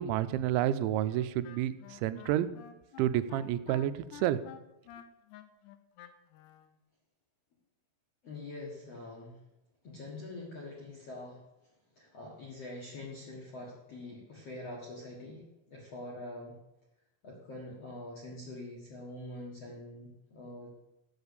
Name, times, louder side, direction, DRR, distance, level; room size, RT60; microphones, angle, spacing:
voice 1, 0.0-2.5 3.0-4.4, right 12 dB, 90° right, 13 dB, 2.9 m, -30 dB
Wind instrument woodwind instrument, 1.1-6.7, left 11 dB, 80° left, 2.7 m, -51 dB
voice 2, 8.2-9.4 9.8-11.4 11.9-16.6 17.2-20.7, left 2 dB, 55° left, -3 dB, 1.7 m, -44 dB
8.0 x 7.0 x 8.1 m, 0.89 s
omnidirectional pair, 5.2 m